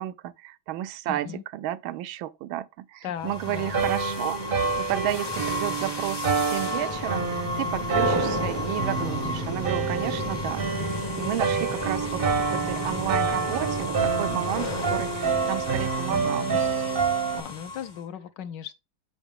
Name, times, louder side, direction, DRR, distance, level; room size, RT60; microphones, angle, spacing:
voice 1, 0.0-12.2 12.5-16.5, right 13 dB, 90° right, 1.4 m, -32 dB
voice 2, 1.1-1.4 3.0-3.8 10.2-10.4 16.1-16.6 17.3-18.8, left 8 dB, 70° left, 1.2 m, -37 dB
sound 1, 3.2-18.0, left 2 dB, 25° left, 0.6 m, -32 dB
sound 2, 3.7-17.4, right 5 dB, 55° right, 0.6 m, -28 dB
8.1 x 5.2 x 3.5 m
omnidirectional pair, 2.1 m